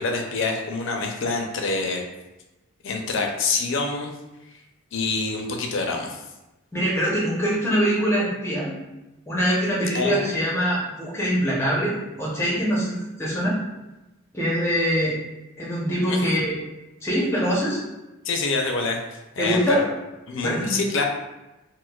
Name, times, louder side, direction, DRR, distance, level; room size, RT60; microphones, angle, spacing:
voice 1, 0.0-2.0 2.8-4.1 4.9-6.2 9.9-10.2 16.1-16.3 18.2-19.9 20.3-21.0, left 3 dB, 60° left, 3 dB, 0.5 m, -26 dB
voice 2, 6.7-8.8 9.3-13.6 14.3-15.2 15.6-16.6 17.0-17.8 19.4-19.8 20.3-20.7, equal, 10° left, -5 dB, 0.7 m, -23 dB
4.4 x 2.1 x 2.3 m, 1.0 s
head